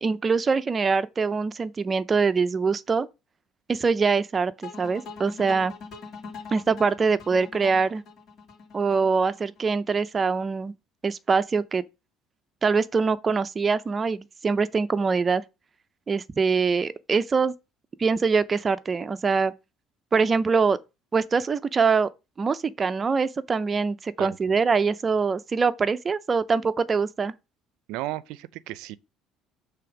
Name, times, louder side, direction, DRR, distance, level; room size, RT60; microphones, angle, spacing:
voice 1, 0.0-3.1 3.7-5.7 6.5-8.0 8.7-10.7 11.0-11.8 12.6-15.4 16.1-17.5 18.0-19.5 20.1-20.8 21.1-22.1 22.4-27.3, right 5 dB, 25° right, 0.5 m, -23 dB
sound 1, 4.6-9.7, left 4 dB, 50° left, 2.4 m, -42 dB
voice 2, 24.2-24.5 27.9-29.0, right 16 dB, 80° right, 0.5 m, -34 dB
6.8 x 3.5 x 5.9 m
cardioid pair, 120°, 0 cm